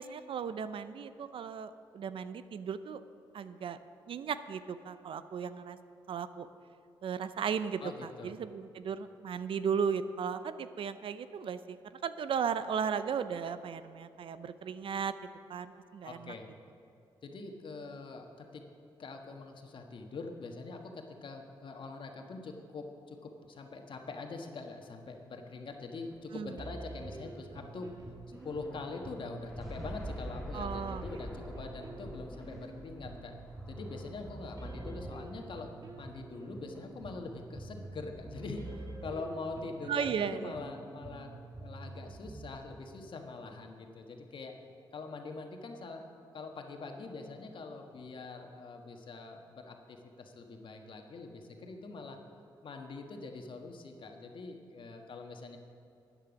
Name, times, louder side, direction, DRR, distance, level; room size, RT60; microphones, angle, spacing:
voice 1, 0.0-3.0 3.3-3.8 4.1-5.8 6.1-6.5 7.0-11.8 12.0-15.1 15.5-16.3 26.3-26.5 30.5-31.0 39.9-40.5, right 7 dB, 70° right, 13 dB, 0.5 m, -36 dB
voice 2, 7.8-8.3 16.0-16.5 17.2-18.6 19.0-27.9 28.3-33.3 33.7-38.7 39.0-44.5 44.9-46.0 46.3-52.2 52.6-55.6, left 3 dB, 60° left, 3 dB, 1.4 m, -44 dB
sound 1, 26.1-39.6, equal, ahead, 2.3 m, -48 dB
sound 2, 26.6-42.6, right 2 dB, 40° right, 1.4 m, -47 dB
13.0 x 9.1 x 5.2 m, 2.7 s
cardioid pair, 70°, 9 cm